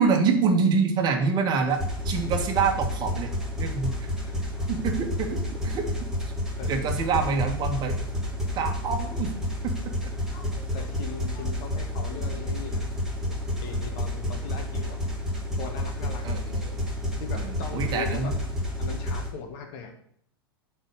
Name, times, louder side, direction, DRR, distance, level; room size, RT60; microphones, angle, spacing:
voice 1, 0.0-3.3 3.6-4.0 4.7-5.8 6.7-8.0 8.6-9.3 9.6-9.7 16.2-16.8 17.3-18.3, right 5 dB, 35° right, 4 dB, 1.7 m, -26 dB
sound 1, 1.7-19.3, left 1 dB, 5° right, 2.8 m, -30 dB
voice 2, 3.9-4.7 6.6-6.7 10.3-12.9 13.2-15.0 15.6-16.4 17.2-18.3 18.8-19.9, left 6 dB, 50° left, 3 dB, 2.0 m, -40 dB
7.4 x 4.7 x 6.4 m, 0.66 s
figure-of-eight pair, 95°, 12 cm